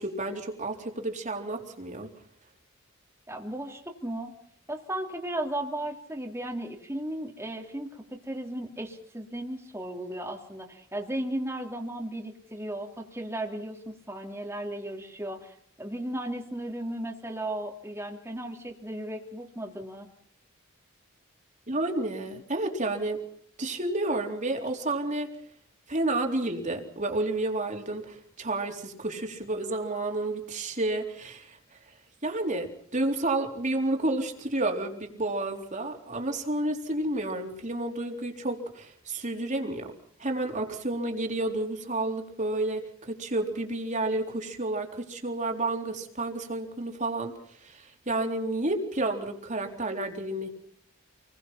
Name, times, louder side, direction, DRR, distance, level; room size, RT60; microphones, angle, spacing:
voice 1, 0.0-2.1 21.7-23.2 23.6-25.3 25.9-31.6 32.2-39.9 40.2-47.3 47.6-50.5, right 2 dB, 35° right, 3 dB, 3.8 m, -30 dB
voice 2, 3.3-4.3 4.7-20.1, right 1 dB, 10° right, 1 dB, 3.0 m, -35 dB
28.5 x 21.5 x 5.9 m, 0.67 s
head